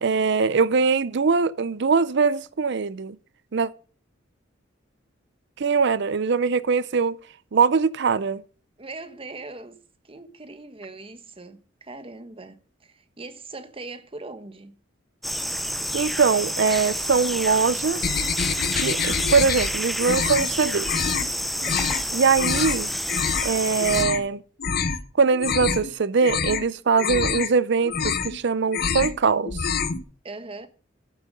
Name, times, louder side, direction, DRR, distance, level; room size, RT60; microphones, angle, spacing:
voice 1, 0.0-3.2 3.5-3.7 5.6-7.2 7.5-8.4 15.9-18.2 18.8-20.9 22.1-22.9 23.4-24.4 25.2-29.7, right 5 dB, 60° right, 0.5 m, -22 dB
voice 2, 8.8-9.8 10.0-14.7 30.2-30.7, right 3 dB, 30° right, 1.1 m, -40 dB
sound 1, 15.2-24.0, equal, ahead, 0.7 m, -29 dB
sound 2, 18.0-19.7 20.0-20.5 20.8-21.3 21.6-22.0 22.4-22.8 23.1-23.5 23.8-24.2 24.6-25.0 25.3-25.9 26.2-26.6 27.0-27.5 27.8-28.4 28.7-29.2 29.5-30.0, left 6 dB, 55° left, 1.0 m, -26 dB
9.0 x 7.9 x 5.1 m
head